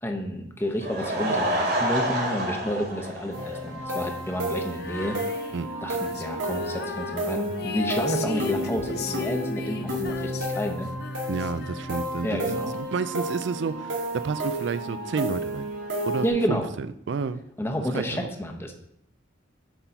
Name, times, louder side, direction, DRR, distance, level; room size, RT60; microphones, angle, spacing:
voice 1, 0.0-5.2 5.8-10.9 12.2-12.7 16.2-16.7 17.6-18.7, equal, 10° left, 3 dB, 0.8 m, -30 dB
Laughter / Crowd, 0.6-4.1 4.4-4.5 5.0-5.1 5.3-5.4, right 1 dB, 50° right, 1.7 m, -28 dB
sound 1, 3.3-16.3, equal, 90° right, 2.2 m, -31 dB
Female singing, 4.7-12.2, left 4 dB, 55° left, 0.6 m, -38 dB
voice 2, 11.3-15.7 16.0-17.4 17.9-18.3, right 4 dB, 70° right, 13 dB, 0.4 m, -30 dB
8.0 x 3.9 x 5.8 m, 0.73 s
head